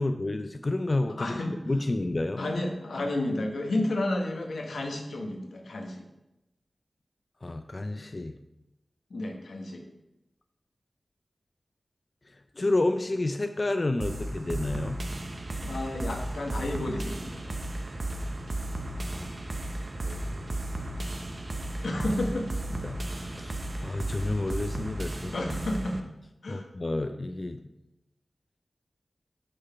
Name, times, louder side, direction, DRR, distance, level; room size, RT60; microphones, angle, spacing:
voice 1, 0.0-2.4 7.4-8.4 12.6-15.0 19.1-19.3 20.0-20.6 22.8-25.3 26.5-27.6, left 2 dB, 45° left, 7 dB, 0.4 m, -30 dB
voice 2, 1.2-1.6 2.4-6.0 9.1-9.8 15.6-17.5 21.8-22.5 25.1-26.0 26.4-26.7, left 1 dB, 85° left, 2 dB, 1.0 m, -31 dB
sound 1, 14.0-26.0, right 1 dB, 55° right, 0.8 m, -34 dB
6.4 x 4.0 x 5.6 m, 0.91 s
cardioid pair, 45°, 0 cm